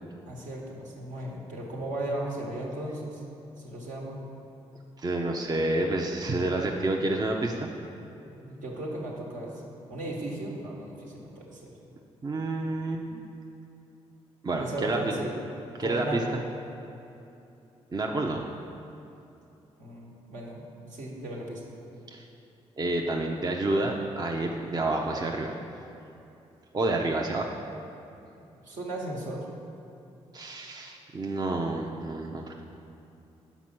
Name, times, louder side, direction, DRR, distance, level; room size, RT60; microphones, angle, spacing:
voice 1, 0.2-3.2 3.6-4.2 8.3-11.7 14.6-15.4 15.8-16.4 19.8-21.8 28.6-29.4, right 1 dB, 70° right, -3 dB, 1.3 m, -36 dB
voice 2, 5.0-7.7 12.2-13.2 14.4-15.1 15.8-16.2 17.9-18.5 22.1-22.3 22.8-25.5 26.7-27.5 30.3-32.6, right 2 dB, 30° right, 1 dB, 0.6 m, -29 dB
6.0 x 4.4 x 5.9 m, 2.8 s
hypercardioid pair, 45°, 14 cm